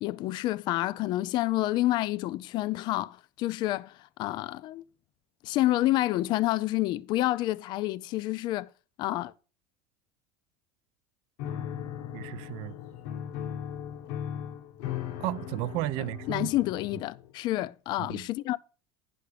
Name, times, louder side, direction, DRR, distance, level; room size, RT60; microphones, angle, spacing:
voice 1, 0.0-4.8 5.4-8.7 9.0-9.3 16.3-18.6, left 16 dB, 50° left, 0.4 m, -28 dB
Piano, 11.4-17.3, left 9 dB, 80° left, 0.9 m, -38 dB
voice 2, 12.1-12.7 15.2-16.5 18.0-18.3, right 17 dB, 65° right, 0.5 m, -33 dB
10.0 x 5.8 x 4.9 m
supercardioid pair, 125°, 10 cm